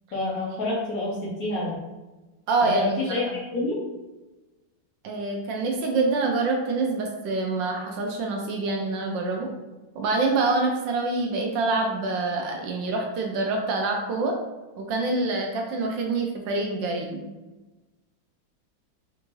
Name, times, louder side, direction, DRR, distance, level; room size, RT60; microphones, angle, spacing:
voice 1, 0.1-1.7 2.6-3.8, left 2 dB, 60° left, -6 dB, 1.0 m, -28 dB
voice 2, 2.5-2.8 5.0-9.5 9.9-14.3 14.8-17.3, right 3 dB, 75° right, 1 dB, 1.2 m, -26 dB
4.4 x 2.5 x 3.0 m, 1.1 s
omnidirectional pair, 2.2 m